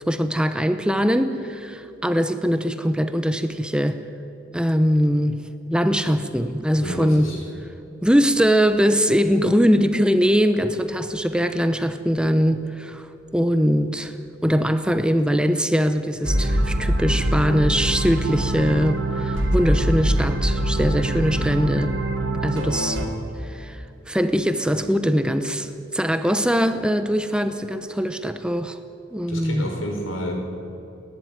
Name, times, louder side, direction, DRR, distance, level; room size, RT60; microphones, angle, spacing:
voice 1, 0.1-4.0 4.5-5.4 5.7-7.3 8.0-13.1 13.3-14.2 14.4-21.9 22.4-23.0 23.5-28.8 29.1-29.7, equal, 5° right, 0.8 m, -21 dB
voice 2, 6.8-7.5 29.3-30.3, equal, 85° left, 5.1 m, -30 dB
sound 1, 16.2-23.1, right 1 dB, 65° right, 3.9 m, -23 dB
29.5 x 11.5 x 9.4 m
head